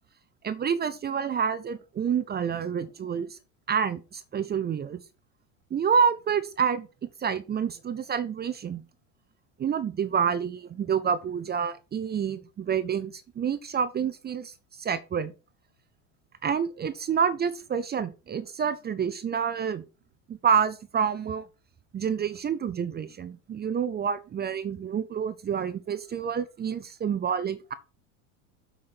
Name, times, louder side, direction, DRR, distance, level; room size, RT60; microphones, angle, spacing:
voice 1, 0.4-3.4 3.7-5.0 5.7-6.9 7.2-8.8 9.6-15.3 16.4-19.8 20.3-21.5 21.9-27.7, right 7 dB, 25° right, 0.6 m, -28 dB
7.7 x 5.7 x 4.3 m
supercardioid pair, 115°, 41 cm